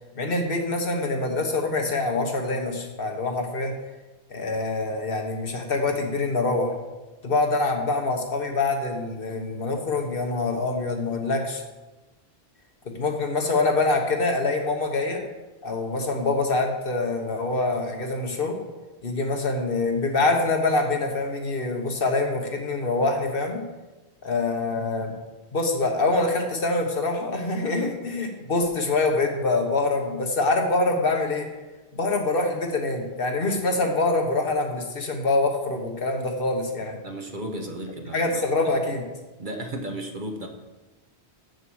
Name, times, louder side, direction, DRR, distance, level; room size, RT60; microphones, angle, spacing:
voice 1, 0.2-3.7 4.3-6.8 7.2-11.6 12.9-15.2 15.6-18.6 19.0-23.6 24.2-25.1 25.5-31.5 31.9-37.0 38.1-39.0, left 3 dB, 60° left, 3 dB, 1.4 m, -25 dB
voice 2, 37.0-38.7 39.4-40.5, right 1 dB, 50° right, 4 dB, 1.1 m, -34 dB
7.6 x 6.7 x 6.3 m, 1.1 s
omnidirectional pair, 1.1 m